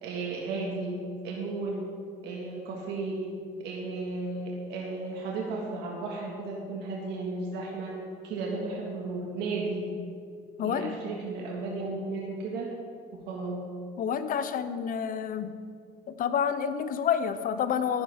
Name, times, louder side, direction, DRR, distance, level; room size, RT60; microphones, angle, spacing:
voice 1, 0.0-1.0 1.2-1.9 2.2-3.3 3.6-7.9 8.2-9.8 10.6-12.7 13.1-13.6, right 3 dB, 90° right, -2 dB, 1.8 m, -34 dB
voice 2, 10.6-11.0 14.0-15.5 16.1-18.0, left 8 dB, 55° left, 11 dB, 0.8 m, -29 dB
15.0 x 10.5 x 3.6 m, 2.2 s
cardioid pair, 110°, 17 cm